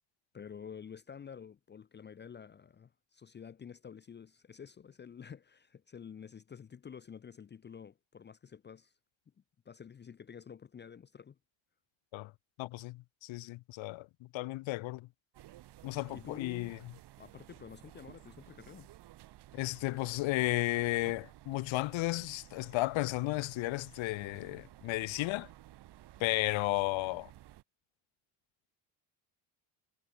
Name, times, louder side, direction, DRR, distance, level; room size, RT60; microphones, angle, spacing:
voice 1, 0.3-8.9 9.6-11.4 16.1-16.8 17.2-18.9, left 7 dB, 25° left, 0.9 m, -49 dB
voice 2, 12.6-15.1 15.8-16.8 19.5-25.5 26.2-27.3, left 19 dB, 85° left, 1.5 m, -34 dB
sound 1, 15.3-27.6, right 14 dB, 60° right, 4.4 m, -55 dB
cardioid pair, 175°, 45 cm